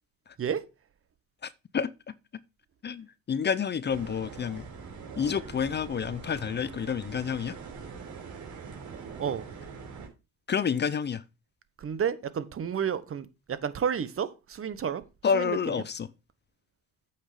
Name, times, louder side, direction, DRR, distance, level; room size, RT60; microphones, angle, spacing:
voice 1, 1.4-2.1 2.8-4.7 5.2-7.6 10.5-11.2 15.2-16.1, left 7 dB, 35° left, 0.6 m, -29 dB
sound 1, 3.8-10.1, right 5 dB, 75° right, 4.8 m, -43 dB
voice 2, 11.8-15.0 15.3-15.6, right 8 dB, 45° right, 1.1 m, -31 dB
8.5 x 5.8 x 4.9 m
cardioid pair, 90°, 30 cm